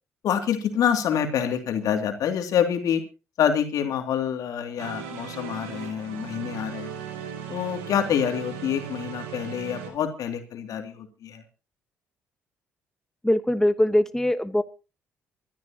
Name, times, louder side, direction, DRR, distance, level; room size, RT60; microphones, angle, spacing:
voice 1, 0.2-3.0 3.4-6.9 7.5-11.4, left 8 dB, 65° left, 6 dB, 2.6 m, -26 dB
sound 1, 4.8-9.9, right 8 dB, 85° right, 2.4 m, -37 dB
voice 2, 13.2-14.6, left 1 dB, 5° left, 11 dB, 1.1 m, -22 dB
24.5 x 12.0 x 2.9 m, 0.32 s
hypercardioid pair, 50°, 7 cm